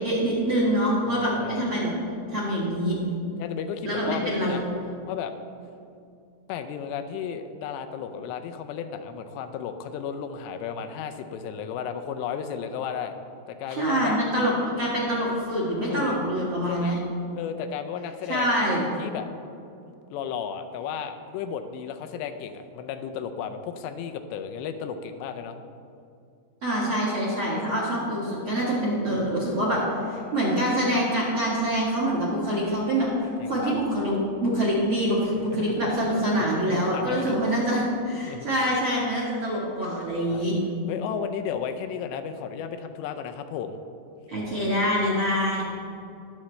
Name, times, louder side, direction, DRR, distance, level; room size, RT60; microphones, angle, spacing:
voice 1, 0.0-1.9 2.3-2.9 3.8-4.6 13.7-17.0 18.3-18.8 26.6-29.8 30.1-40.5 44.3-45.7, equal, 45° right, -6 dB, 2.0 m, -25 dB
voice 2, 1.1-1.7 3.4-4.6 5.1-5.3 6.5-13.1 13.5-14.2 15.9-16.2 16.7-17.0 17.3-18.5 19.0-19.3 20.1-25.6 30.2-30.4 33.4-33.7 35.5-35.7 36.3-37.4 38.3-38.5 40.3-40.5 40.9-43.8, left 7 dB, 85° left, 7 dB, 2.8 m, -34 dB
20.5 x 7.1 x 3.2 m, 2.5 s
omnidirectional pair, 4.9 m